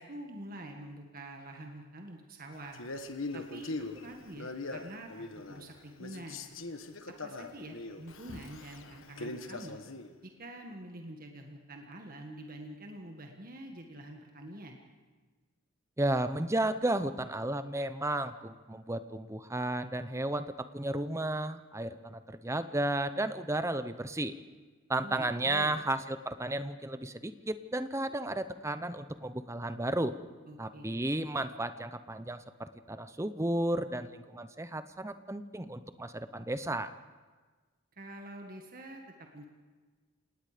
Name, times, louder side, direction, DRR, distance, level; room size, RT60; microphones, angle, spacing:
voice 1, 0.0-2.8 3.3-6.4 7.1-9.8 10.2-14.8 25.0-25.8 30.5-31.0 37.9-39.4, right 1 dB, 40° right, 2 dB, 1.7 m, -46 dB
Male speech man speaking, 2.7-5.7 6.0-10.1, left 2 dB, 65° left, 1.3 m, -41 dB
voice 2, 16.0-24.3 24.9-30.1 30.6-36.9, right 1 dB, 15° right, 11 dB, 0.7 m, -33 dB
28.0 x 18.5 x 5.1 m, 1.4 s
head